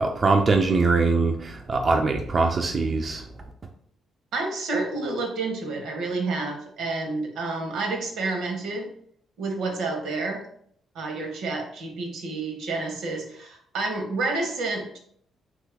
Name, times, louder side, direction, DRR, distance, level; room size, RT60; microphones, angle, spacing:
voice 1, 0.0-3.5, right 3 dB, 35° right, 3 dB, 0.3 m, -22 dB
voice 2, 4.3-8.9 9.4-10.4 10.9-15.0, right 3 dB, 80° right, 3 dB, 0.8 m, -29 dB
3.0 x 2.3 x 3.2 m, 0.65 s
cardioid pair, 90°, 0 cm